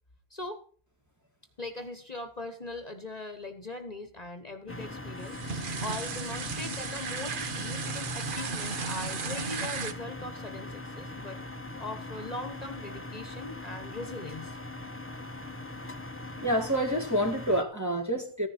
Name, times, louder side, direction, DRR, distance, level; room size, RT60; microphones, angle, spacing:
voice 1, 0.3-0.6 1.6-5.4 5.8-11.4 11.8-14.6, left 2 dB, 35° left, 1.4 m, -40 dB
sound 1, 4.7-17.6, left 2 dB, 10° left, 1.0 m, -41 dB
sound 2, 5.2-9.9, right 5 dB, 50° right, 1.1 m, -35 dB
voice 2, 16.4-18.5, equal, 15° right, 1.9 m, -28 dB
15.0 x 11.0 x 4.3 m
omnidirectional pair, 1.2 m